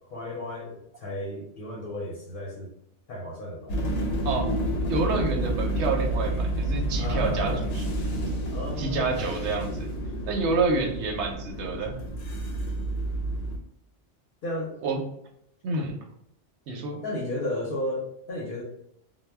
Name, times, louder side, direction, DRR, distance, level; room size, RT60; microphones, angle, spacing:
voice 1, 0.1-2.7 3.1-3.8 7.0-7.7 8.5-9.3 14.4-14.8 17.0-18.6, left 1 dB, 55° left, -3 dB, 0.7 m, -33 dB
sound 1, 3.7-13.6, right 1 dB, 85° left, 0.9 m, -29 dB
voice 2, 4.9-7.8 8.8-9.9 10.3-12.0 14.8-15.0 15.6-16.0 16.7-17.0, right 4 dB, 75° right, 2 dB, 0.9 m, -28 dB
2.1 x 2.1 x 3.3 m, 0.74 s
omnidirectional pair, 1.2 m